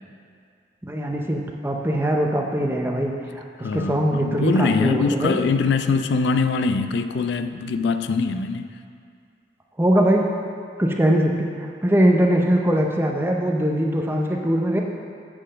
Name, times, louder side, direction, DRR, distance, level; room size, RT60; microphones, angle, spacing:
voice 1, 0.8-5.4 9.8-10.3 10.8-11.5 11.8-14.8, right 1 dB, 10° right, 1 dB, 0.5 m, -21 dB
voice 2, 3.6-8.7, left 4 dB, 70° left, 9 dB, 0.3 m, -23 dB
7.4 x 4.4 x 6.2 m, 2.3 s
head